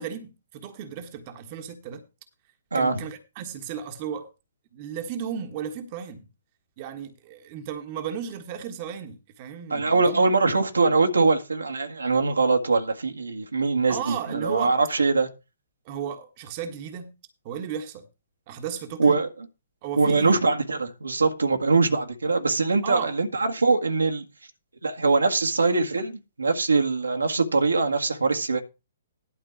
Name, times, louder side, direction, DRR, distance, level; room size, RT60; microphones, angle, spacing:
voice 1, 0.0-2.0 2.7-4.3 4.7-6.3 6.8-10.3 13.9-14.8 15.8-17.1 17.4-18.1 18.5-19.2 19.8-20.4 22.8-23.1, right 8 dB, 35° right, 1.5 m, -34 dB
voice 2, 9.7-15.3 19.0-19.3 20.0-24.2 24.8-28.6, right 3 dB, 70° right, 1.7 m, -22 dB
12.0 x 4.4 x 7.3 m
figure-of-eight pair, 120°, 0 cm